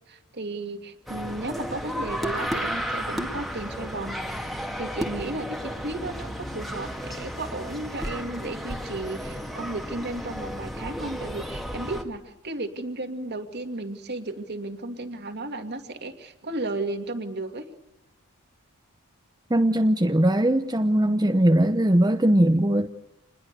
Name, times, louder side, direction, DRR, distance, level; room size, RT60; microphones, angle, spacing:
voice 1, 0.1-4.2 4.8-17.7, right 2 dB, 50° right, 7 dB, 2.4 m, -34 dB
sound 1, 1.1-12.0, equal, ahead, 2.1 m, -33 dB
voice 2, 19.5-22.9, right 1 dB, 20° right, 6 dB, 0.9 m, -20 dB
27.5 x 21.0 x 6.8 m, 0.88 s
head